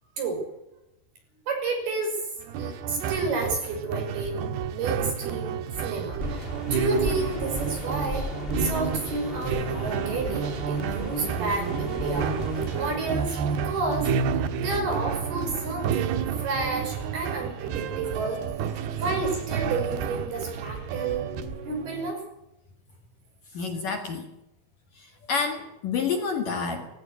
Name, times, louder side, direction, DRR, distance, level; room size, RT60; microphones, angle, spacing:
voice 1, 1.5-2.2 2.6-6.4 6.7-8.3 8.6-12.3 12.7-18.4 19.0-21.2 21.7-22.2, right 3 dB, 55° right, 3 dB, 7.8 m, -31 dB
sound 1, 2.4-21.4, right 7 dB, 70° right, 3.1 m, -30 dB
sound 2, 3.1-22.1, right 6 dB, 90° right, 5.0 m, -40 dB
sound 3, 6.2-13.0, left 2 dB, 70° left, 0.5 m, -36 dB
voice 2, 23.5-24.3 25.0-26.9, left 5 dB, 55° left, 5 dB, 2.9 m, -29 dB
19.5 x 16.5 x 9.9 m, 0.88 s
omnidirectional pair, 5.4 m